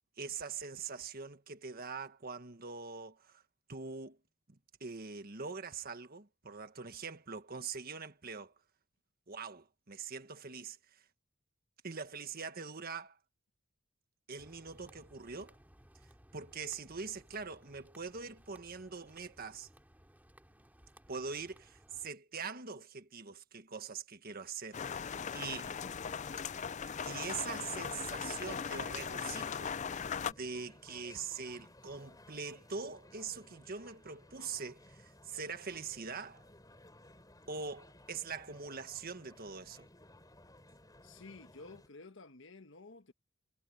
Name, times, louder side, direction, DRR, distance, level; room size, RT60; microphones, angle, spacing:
voice 1, 0.2-3.4 3.7-4.2 4.5-8.5 9.3-11.0 11.8-13.2 14.3-15.6 16.3-19.7 21.1-25.8 27.0-36.4 37.5-39.9, right 5 dB, 45° right, 1.6 m, -43 dB
sound 1, 14.4-22.1, equal, 10° right, 2.7 m, -61 dB
sound 2, 24.7-30.3, left 6 dB, 35° left, 0.4 m, -39 dB
sound 3, 25.1-41.9, left 1 dB, 20° left, 4.5 m, -59 dB
voice 2, 41.0-43.1, left 3 dB, 65° left, 1.4 m, -53 dB
head